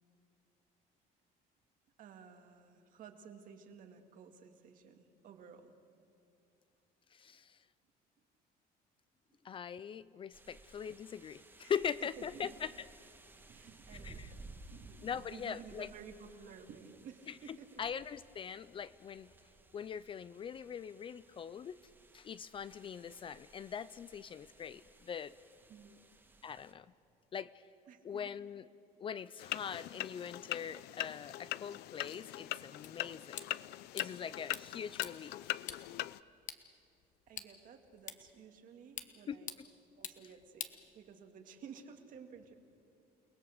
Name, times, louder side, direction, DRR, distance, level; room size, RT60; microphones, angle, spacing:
voice 1, 2.0-5.7 11.6-11.7 12.0-12.6 13.4-17.8 25.7-26.0 26.5-26.6 27.9-28.3 37.3-39.6 40.0-42.5, right 6 dB, 55° right, 5 dB, 2.3 m, -54 dB
voice 2, 7.1-7.6 9.4-12.7 14.0-14.3 15.0-15.9 17.8-19.3 19.7-21.8 22.1-25.3 26.4-26.9 27.3-27.5 28.0-28.6 29.0-33.5 33.9-35.6 39.3-39.4, left 7 dB, 30° left, 16 dB, 0.4 m, -42 dB
sound 1, 10.3-26.7, right 3 dB, 10° right, 1.7 m, -58 dB
sound 2, 29.4-36.2, left 16 dB, 75° left, 0.5 m, -41 dB
sound 3, 32.8-41.4, left 9 dB, 50° left, 1.3 m, -50 dB
29.5 x 19.5 x 6.7 m, 2.7 s
cardioid pair, 150°, 17 cm